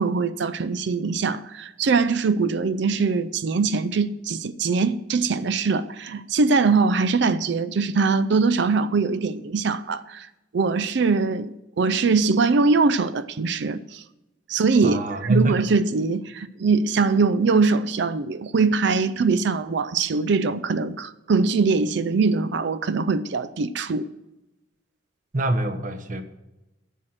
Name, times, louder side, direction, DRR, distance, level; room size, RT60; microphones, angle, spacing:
voice 1, 0.0-10.3 10.5-14.0 14.5-24.1, right 4 dB, 60° right, 0.4 m, -22 dB
voice 2, 14.8-15.6 25.3-26.2, right 1 dB, 40° right, 0.9 m, -24 dB
10.0 x 6.4 x 7.4 m
head